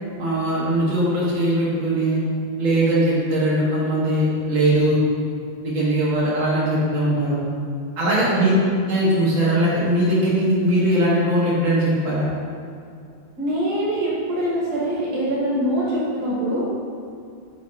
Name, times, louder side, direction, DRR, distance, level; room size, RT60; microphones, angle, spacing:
voice 1, 0.2-2.2 2.6-5.0 5.6-7.4 8.0-8.5 8.9-12.2, right 1 dB, 75° right, -7 dB, 2.1 m, -20 dB
voice 2, 8.0-8.6 13.4-16.7, right 1 dB, 55° right, -6 dB, 1.8 m, -24 dB
6.1 x 4.4 x 3.7 m, 2.4 s
omnidirectional pair, 2.2 m